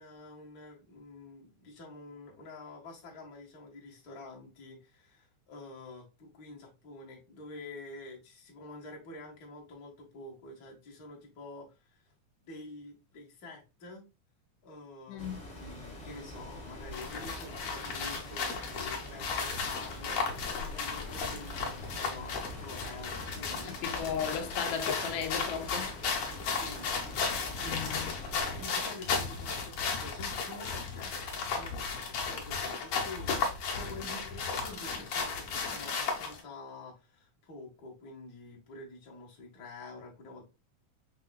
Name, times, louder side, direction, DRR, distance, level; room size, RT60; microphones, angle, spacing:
voice 1, 0.0-12.1 12.4-14.1 14.6-23.7 26.5-26.9 27.5-40.4, left 2 dB, 40° left, 1.4 m, -48 dB
voice 2, 15.1-15.4 23.7-25.9 27.7-28.1, left 7 dB, 80° left, 1.4 m, -36 dB
sound 1, 15.2-28.6, left 1 dB, 20° left, 1.3 m, -45 dB
sound 2, 16.9-36.4, left 5 dB, 60° left, 1.8 m, -35 dB
5.6 x 3.6 x 2.2 m
omnidirectional pair, 3.5 m